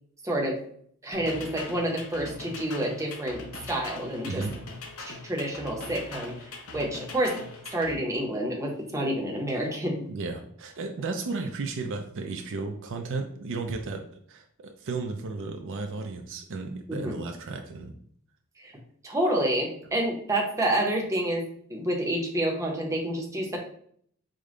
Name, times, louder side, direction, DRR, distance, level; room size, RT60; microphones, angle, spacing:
voice 1, 0.2-0.6 1.0-4.4 5.1-7.4 7.7-10.0 16.9-17.2 18.6-18.7 19.0-21.4 21.7-23.6, right 1 dB, 15° right, -1 dB, 0.7 m, -28 dB
sound 1, 1.1-7.9, left 3 dB, 70° left, 0.8 m, -41 dB
voice 2, 10.1-14.0 14.3-17.9, right 3 dB, 60° right, 4 dB, 0.4 m, -34 dB
5.0 x 2.2 x 3.7 m, 0.63 s
head